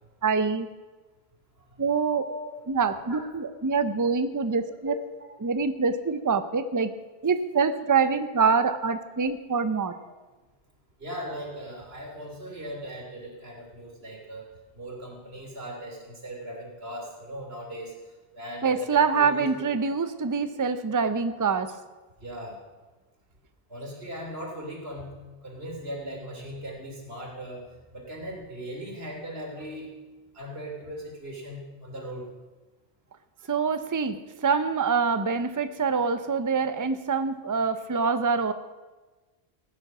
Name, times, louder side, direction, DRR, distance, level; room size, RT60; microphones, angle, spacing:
voice 1, 0.2-0.7 1.8-2.3 2.7-4.9 5.4-6.9 7.2-9.9 18.6-21.7 33.5-34.2 34.4-38.5, right 5 dB, 20° right, 11 dB, 0.6 m, -25 dB
voice 2, 2.3-2.6 3.1-3.2 4.8-4.9 9.9-10.0 11.0-14.5 14.7-17.9 18.3-19.7 22.2-22.6 23.7-25.2 25.4-27.6 27.9-29.9 30.3-32.3, equal, 75° right, -1 dB, 3.4 m, -38 dB
16.0 x 9.5 x 6.1 m, 1.2 s
omnidirectional pair, 1.1 m